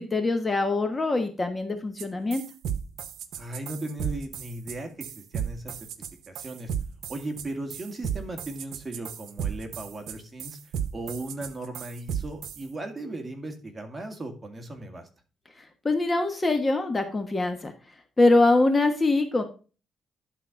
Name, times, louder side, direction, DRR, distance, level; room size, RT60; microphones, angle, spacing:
voice 1, 0.0-2.4 15.8-17.7 18.2-19.4, left 2 dB, 25° left, 6 dB, 1.2 m, -23 dB
sound 1, 2.0-2.1 2.3-12.6, right 8 dB, 85° right, 0.8 m, -34 dB
voice 2, 3.4-5.8 6.3-6.7 7.1-10.6 10.9-15.1, right 2 dB, 25° right, 3 dB, 2.1 m, -37 dB
11.5 x 4.3 x 5.1 m, 0.35 s
cardioid pair, 95°, 0 cm